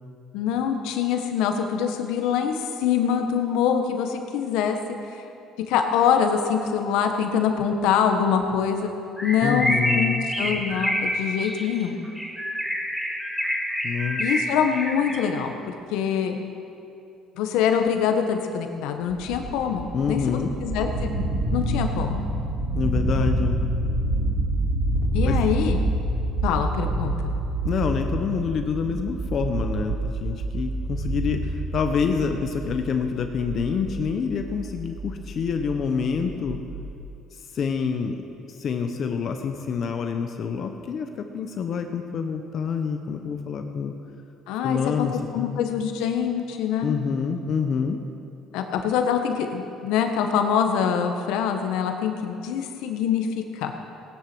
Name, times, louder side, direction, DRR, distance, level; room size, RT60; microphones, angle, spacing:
voice 1, 0.3-4.8 5.7-8.9 9.2-12.0 14.2-16.4 17.4-21.1 21.5-22.2 25.1-25.8 26.4-27.3 44.5-47.0 48.5-53.3 53.5-53.7, left 7 dB, 85° left, 5 dB, 1.5 m, -24 dB
Bird, 9.2-15.5, equal, ahead, 1.3 m, -27 dB
voice 2, 9.4-10.3 13.8-14.2 19.9-20.5 22.8-23.6 25.2-25.6 27.6-36.6 37.5-38.2 38.5-43.9 44.6-45.6 46.8-48.0, left 6 dB, 45° left, 5 dB, 1.0 m, -27 dB
sound 1, 19.1-36.9, right 1 dB, 45° right, 2.4 m, -28 dB
18.5 x 10.5 x 6.3 m, 2.7 s
cardioid pair, 125°, 0 cm